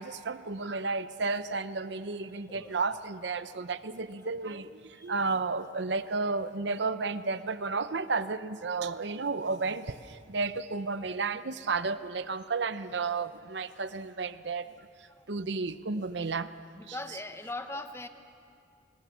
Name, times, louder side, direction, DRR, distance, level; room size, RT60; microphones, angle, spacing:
voice 1, 0.0-14.7 15.3-16.5 16.9-17.0, right 4 dB, 65° right, 13 dB, 0.7 m, -32 dB
voice 2, 2.3-2.8 5.0-5.1 14.8-15.3 16.0-16.1 16.7-18.1, left 2 dB, 15° left, 8 dB, 0.9 m, -41 dB
24.5 x 20.5 x 7.0 m, 2.4 s
head